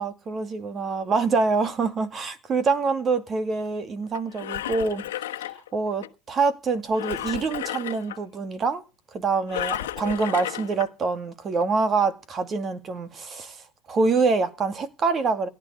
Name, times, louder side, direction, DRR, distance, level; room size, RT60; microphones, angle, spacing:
voice 1, 0.0-5.0 5.7-8.8 9.1-13.6 13.9-15.5, right 4 dB, 30° right, 2.1 m, -25 dB
Engine, 4.1-6.1 6.9-8.2 9.5-10.9 11.5-11.6, left 13 dB, 90° left, 1.2 m, -33 dB
17.5 x 11.0 x 4.8 m
supercardioid pair, 110°, 0 cm